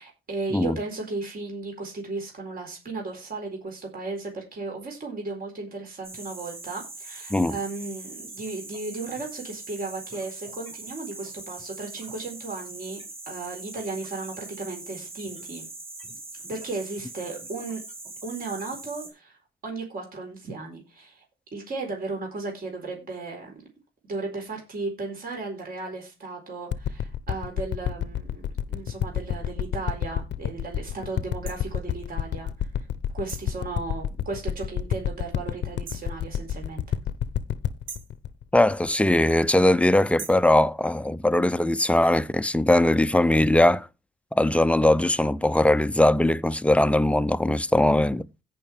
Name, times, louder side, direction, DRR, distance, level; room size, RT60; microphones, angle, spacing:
voice 1, 0.0-13.0 13.3-15.7 16.5-17.8 18.2-19.4 19.6-21.2 21.5-23.5 24.0-32.9 33.1-36.8, right 3 dB, 45° right, 4.3 m, -35 dB
sound 1, 6.0-19.1, right 2 dB, 30° right, 4.9 m, -41 dB
sound 2, 26.7-39.5 40.1-40.2, left 9 dB, 60° left, 0.7 m, -29 dB
sound 3, 31.5-31.6 33.3-33.6 35.9-36.1 37.9-38.2 40.2-40.5, right 6 dB, 75° right, 1.7 m, -40 dB
voice 2, 38.5-43.9 44.3-48.3, left 1 dB, 5° left, 0.5 m, -20 dB
16.5 x 5.7 x 3.4 m
cardioid pair, 90°, 20 cm